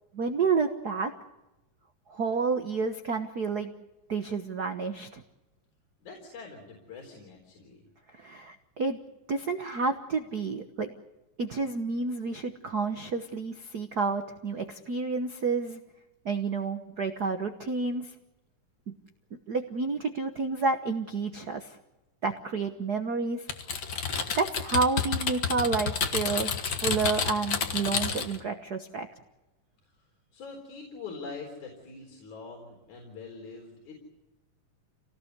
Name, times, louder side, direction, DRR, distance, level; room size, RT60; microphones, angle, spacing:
voice 1, 0.1-1.1 2.1-3.7 4.1-5.2 8.1-9.0 9.3-10.9 11.4-15.8 16.2-18.1 18.9-19.0 19.5-21.8 22.2-23.5 24.4-26.5 26.8-29.1, right 4 dB, 80° right, 7 dB, 0.8 m, -30 dB
voice 2, 6.0-7.8 30.0-33.9, left 4 dB, 65° left, 0 dB, 5.4 m, -44 dB
Typing, 23.5-28.4, left 6 dB, 45° left, 1.5 m, -30 dB
27.5 x 18.5 x 8.1 m, 1.0 s
omnidirectional pair, 3.7 m